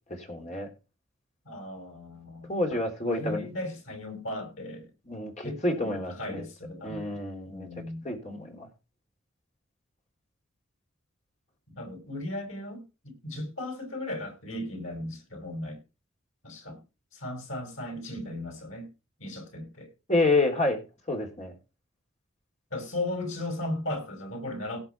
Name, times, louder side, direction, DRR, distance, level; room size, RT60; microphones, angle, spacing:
voice 1, 0.2-0.7 2.5-3.5 5.1-6.4 6.8-7.7 8.0-8.7 20.1-20.8 21.1-21.5, left 2 dB, 35° left, 3.3 m, -28 dB
voice 2, 1.5-4.9 5.4-7.1 7.5-8.1 11.7-15.8 16.4-16.8 17.1-18.9 19.2-19.9 22.7-24.8, left 1 dB, 80° left, 5.2 m, -36 dB
17.5 x 5.9 x 4.5 m
head